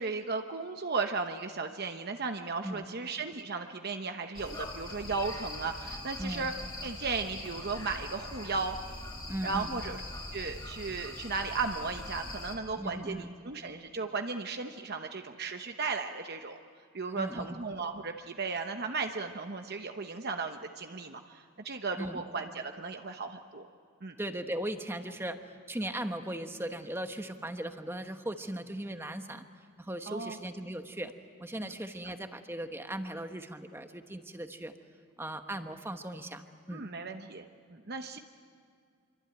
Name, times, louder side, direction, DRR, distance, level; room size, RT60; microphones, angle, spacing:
voice 1, 0.0-6.5 6.8-8.8 9.4-10.0 10.3-16.6 16.9-21.4 21.6-23.7 24.0-24.1 30.1-30.4 31.6-31.7 36.7-37.4 37.7-38.2, right 4 dB, 45° right, 5 dB, 1.0 m, -35 dB
sound 1, 4.3-12.6, left 2 dB, 20° left, 2.8 m, -42 dB
voice 2, 6.2-6.5 9.3-9.8 12.8-13.3 17.1-17.6 22.0-22.2 24.2-29.5 29.8-31.1 31.4-34.7 35.2-36.9, right 1 dB, 10° right, 7 dB, 1.1 m, -38 dB
26.0 x 24.5 x 9.2 m, 2.2 s
head